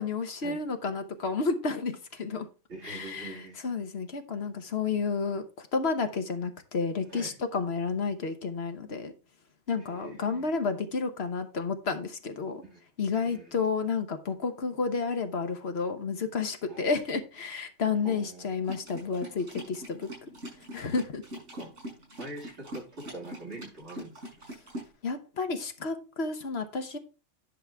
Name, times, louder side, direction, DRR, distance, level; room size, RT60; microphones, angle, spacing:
voice 1, 0.0-2.5 2.8-3.3 3.6-9.1 9.7-12.6 13.0-20.1 20.7-21.2 25.0-27.0, left 4 dB, 60° left, 7 dB, 1.2 m, -31 dB
voice 2, 2.7-3.6 7.1-7.4 9.8-10.5 12.6-12.8 13.2-13.6 16.7-16.9 18.0-18.6 21.5-21.7 22.2-24.2, right 2 dB, 65° right, 0 dB, 2.6 m, -44 dB
sound 1, 18.6-24.9, equal, 85° right, 6.0 m, -42 dB
10.0 x 6.3 x 3.4 m, 0.33 s
omnidirectional pair, 1.2 m